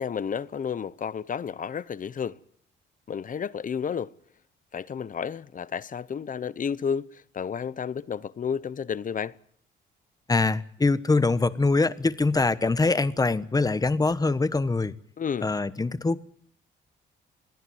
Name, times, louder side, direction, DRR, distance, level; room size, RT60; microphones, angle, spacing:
voice 1, 0.0-2.4 3.1-4.1 4.7-9.3 15.2-15.5, left 7 dB, 40° left, 0.9 m, -31 dB
voice 2, 10.3-14.9 15.4-16.2, left 3 dB, 20° left, 1.2 m, -23 dB
22.5 x 15.0 x 9.4 m
cardioid pair, 90°, 20 cm